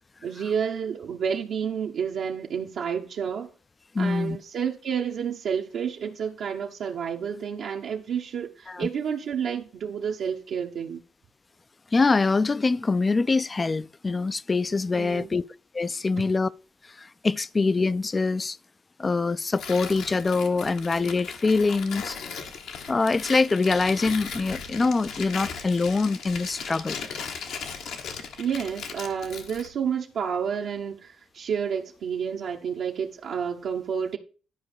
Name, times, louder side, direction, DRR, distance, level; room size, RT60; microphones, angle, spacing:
voice 1, 0.2-3.5 4.0-11.0 15.0-15.3 16.2-16.3 28.4-34.2, right 7 dB, 70° right, 0.9 m, -30 dB
voice 2, 3.9-4.4 8.7-8.9 11.9-15.4 15.7-16.5 17.0-18.6 19.0-22.2 22.9-27.0, left 3 dB, 25° left, 0.4 m, -24 dB
Tearing, 19.5-29.7, left 6 dB, 80° left, 1.5 m, -37 dB
11.0 x 5.1 x 4.8 m
cardioid pair, 90°, 0 cm